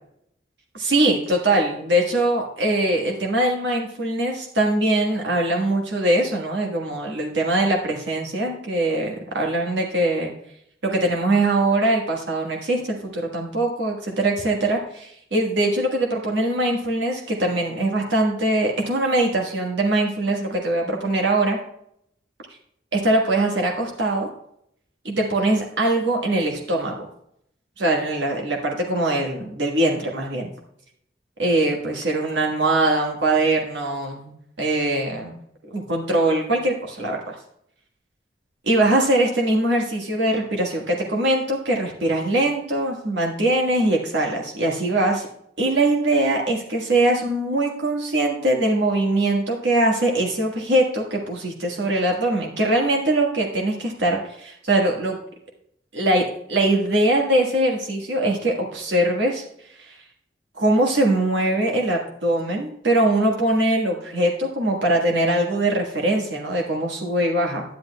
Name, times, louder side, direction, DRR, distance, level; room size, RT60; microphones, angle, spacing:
voice 1, 0.7-10.3 10.8-21.6 22.9-24.3 25.0-27.0 27.8-30.5 31.4-35.4 35.6-37.3 38.7-45.3 45.6-55.2 55.9-59.4 59.8-60.0 60.6-67.6, right 1 dB, 70° right, 0 dB, 1.5 m, -22 dB
10.5 x 10.0 x 2.3 m, 0.73 s
head